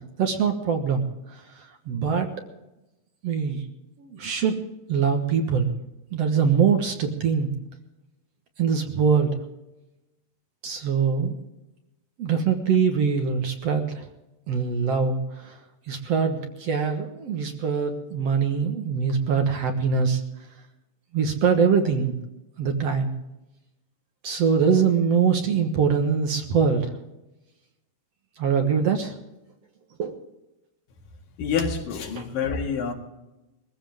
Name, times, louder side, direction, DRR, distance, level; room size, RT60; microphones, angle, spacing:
voice 1, 0.2-1.0 1.3-1.4 1.9-2.3 3.2-3.6 4.0-4.6 4.9-5.7 6.1-7.5 8.6-9.3 10.6-11.4 12.2-14.0 14.5-15.6 15.9-20.2 21.1-22.1 22.6-23.1 24.2-26.9 28.4-29.1 30.0-30.2 32.2-32.3, right 6 dB, 55° right, 4 dB, 2.1 m, -23 dB
voice 2, 31.4-32.9, left 6 dB, 90° left, 2 dB, 3.7 m, -27 dB
21.5 x 15.5 x 3.6 m, 0.98 s
omnidirectional pair, 3.9 m